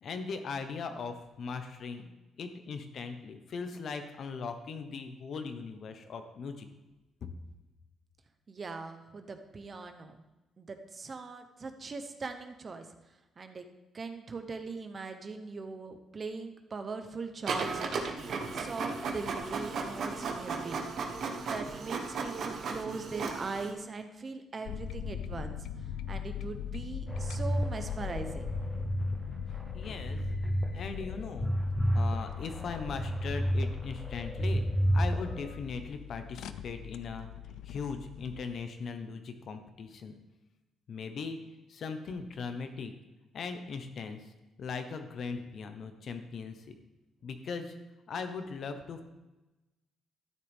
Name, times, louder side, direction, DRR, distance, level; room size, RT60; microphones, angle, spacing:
voice 1, 0.0-2.0 2.4-6.7 29.7-30.2 30.7-31.5 31.9-34.6 34.9-37.3 37.6-40.1 40.9-41.4 41.7-42.9 43.3-44.2 44.6-46.7 47.2-47.7 48.1-49.0, left 5 dB, 55° left, 7 dB, 1.0 m, -39 dB
voice 2, 8.5-10.2 10.6-12.9 13.4-13.7 13.9-20.8 21.4-25.6 26.1-28.5, right 4 dB, 35° right, 7 dB, 0.9 m, -40 dB
Printer, 17.5-23.7, right 4 dB, 60° right, 1.2 m, -35 dB
sound 1, 24.7-38.5, left 8 dB, 85° left, 0.5 m, -41 dB
sound 2, 27.1-29.1 29.6-30.7 31.0-33.7 34.0-35.5, equal, ahead, 1.0 m, -30 dB
12.5 x 9.9 x 3.6 m, 1.1 s
cardioid pair, 125°, 0 cm